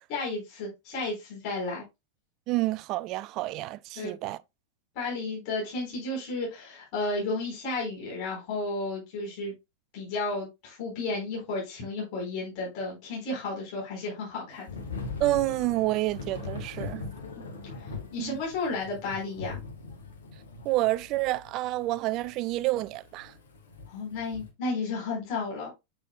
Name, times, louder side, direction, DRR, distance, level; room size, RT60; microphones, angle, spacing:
voice 1, 0.1-1.8 4.0-4.1 4.9-9.5 9.9-14.7 17.3-17.4 17.7-19.6 23.9-25.7, left 3 dB, 45° left, 4.0 m, -33 dB
voice 2, 2.5-4.4 15.2-17.1 18.2-18.4 20.7-23.3, right 17 dB, 40° right, 0.3 m, -29 dB
Thunder / Rain, 14.7-24.5, left 4 dB, 65° left, 2.1 m, -41 dB
7.4 x 7.0 x 2.2 m
figure-of-eight pair, 90°, 0 cm